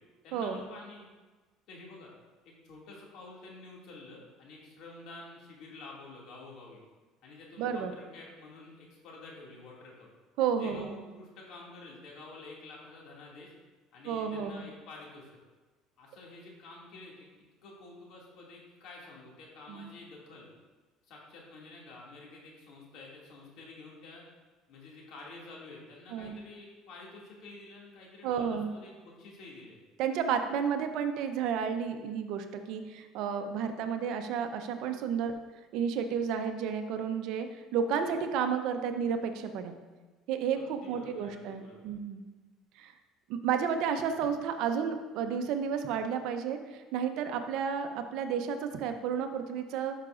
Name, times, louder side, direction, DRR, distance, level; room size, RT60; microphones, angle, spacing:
voice 1, 0.2-1.1 1.7-2.1 2.4-6.8 7.2-10.1 10.6-13.5 13.9-15.3 16.0-17.3 17.6-20.5 21.0-24.3 24.7-29.8 40.5-41.9, left 2 dB, 65° left, -3 dB, 2.4 m, -49 dB
voice 2, 7.6-7.9 10.4-10.9 14.0-14.7 19.7-19.9 26.1-26.3 28.2-28.7 30.0-35.3 35.7-37.5 37.7-39.8 40.3-42.2 42.8-42.9 43.3-49.9, right 7 dB, 70° right, 7 dB, 0.7 m, -32 dB
12.0 x 5.8 x 2.6 m, 1.3 s
cardioid pair, 115°, 0 cm